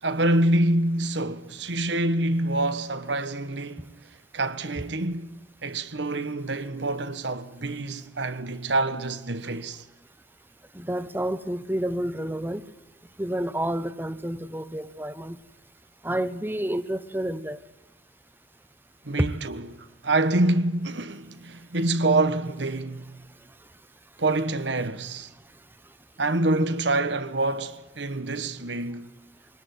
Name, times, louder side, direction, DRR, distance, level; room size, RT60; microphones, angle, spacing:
voice 1, 0.0-3.9 4.3-5.3 5.6-9.8 19.0-23.2 24.2-25.3 26.2-29.1, right 2 dB, 75° right, 1.5 m, -26 dB
voice 2, 10.7-12.6 13.2-15.4 16.0-17.6 19.2-19.3, right 1 dB, 10° right, 1.0 m, -29 dB
23.5 x 18.5 x 9.4 m
head